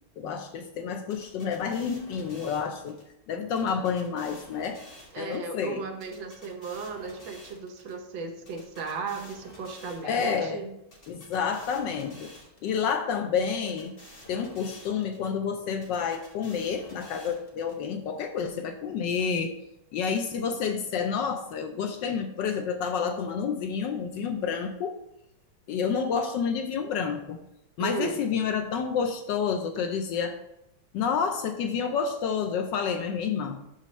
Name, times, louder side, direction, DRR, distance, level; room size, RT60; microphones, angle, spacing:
voice 1, 0.2-3.0 3.3-4.8 5.2-5.9 10.0-10.6 11.1-12.3 12.6-13.9 14.3-19.5 19.9-25.0 25.7-27.4 27.8-30.4 30.9-33.6, left 6 dB, 75° left, 6 dB, 1.1 m, -29 dB
sound 1, 1.1-3.0 3.5-5.5 6.0-7.9 8.5-10.4 10.9-12.8 13.4-15.3 15.8-17.7, left 1 dB, 30° left, 1.4 m, -50 dB
voice 2, 5.1-10.7 27.8-28.2, right 4 dB, 70° right, 4 dB, 1.6 m, -36 dB
11.5 x 3.9 x 3.2 m, 0.83 s
omnidirectional pair, 2.3 m